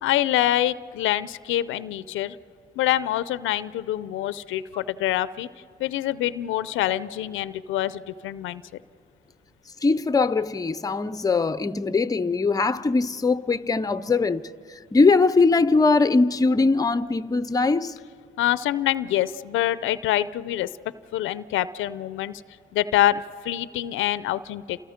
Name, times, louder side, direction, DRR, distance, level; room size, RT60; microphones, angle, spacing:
voice 1, 0.0-2.4 2.8-5.5 5.8-8.8 18.4-20.7 21.1-22.4 22.7-24.8, left 13 dB, 85° left, 0.5 m, -25 dB
voice 2, 9.8-18.0, left 3 dB, 20° left, 0.6 m, -21 dB
29.0 x 27.5 x 5.1 m
cardioid pair, 90°, 20 cm